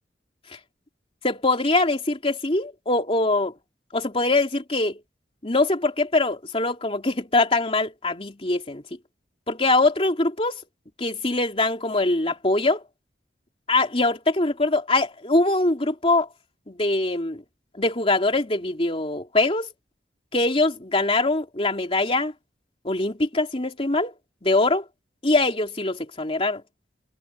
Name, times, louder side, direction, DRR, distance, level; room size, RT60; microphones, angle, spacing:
voice 1, 1.2-3.5 3.9-5.0 5.4-8.8 9.5-10.6 11.0-12.8 13.7-16.3 16.7-17.4 17.8-19.7 20.3-22.3 22.8-24.1 24.4-24.8 25.2-26.6, left 2 dB, 30° left, 3.0 m, -23 dB
head